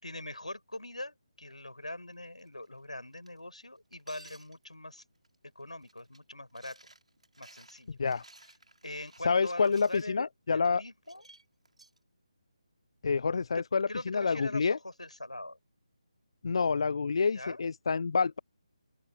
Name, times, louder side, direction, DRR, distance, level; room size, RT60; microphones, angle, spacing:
voice 1, 0.0-5.0 5.4-6.8 7.4-8.0 8.8-11.2 13.5-15.6 17.3-17.7, left 1 dB, 85° left, 5.0 m, -43 dB
sound 1, 2.4-2.7 3.1-3.4 3.9-4.7 5.2-5.4 5.6-6.2 6.5-10.0 11.0-12.0, right 2 dB, 75° right, 4.0 m, -56 dB
voice 2, 9.2-10.8 13.0-14.8 16.4-18.4, left 5 dB, 50° left, 0.5 m, -28 dB
open air
figure-of-eight pair, 150°, 4 cm